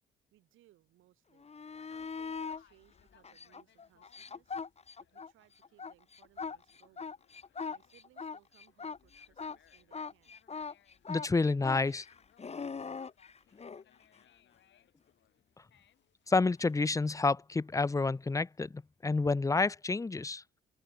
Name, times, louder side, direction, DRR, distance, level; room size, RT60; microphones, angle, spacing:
voice 1, 0.3-1.5 1.8-4.6 5.1-7.1 7.7-10.4, right 15 dB, 90° right, 7.5 m, -67 dB
sound 1, 1.4-2.6 3.2-5.3 5.6-13.8 16.6-16.7, left 5 dB, 30° left, 1.7 m, -41 dB
Conversation, 1.6-16.6, left 10 dB, 65° left, 7.2 m, -69 dB
voice 2, 11.1-12.1 16.3-20.4, left 3 dB, 15° left, 0.7 m, -29 dB
cardioid pair, 90°, 20 cm